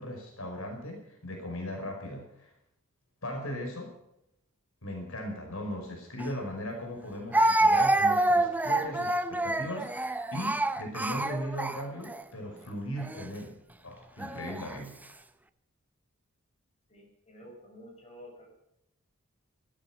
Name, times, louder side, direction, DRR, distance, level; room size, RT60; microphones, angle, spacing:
voice 1, 0.0-2.5 3.2-3.9 4.8-13.5 13.8-15.0, equal, 75° left, 2 dB, 5.2 m, -38 dB
Speech, 6.2-6.3 7.3-12.2 13.0-13.3 14.2-14.8, right 2 dB, 10° right, 0.7 m, -27 dB
voice 2, 16.9-18.5, equal, 30° left, 0 dB, 6.1 m, -50 dB
16.5 x 13.5 x 6.0 m, 0.81 s
head